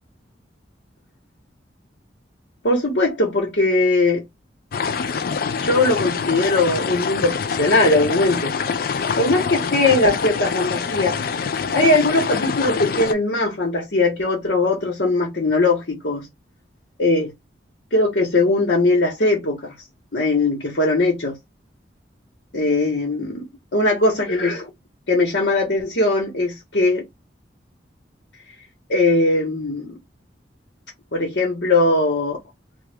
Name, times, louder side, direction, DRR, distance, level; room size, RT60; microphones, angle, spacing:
voice 1, 2.6-4.2 5.6-8.5 9.2-11.2 11.7-16.3 17.0-17.3 17.9-19.7 20.1-21.4 22.5-23.4 23.7-24.7 25.1-27.1 28.9-30.0 31.1-32.4, left 2 dB, 70° left, 1.2 m, -20 dB
sound 1, 4.7-13.1, left 5 dB, 55° left, 0.4 m, -25 dB
3.0 x 2.3 x 3.4 m
head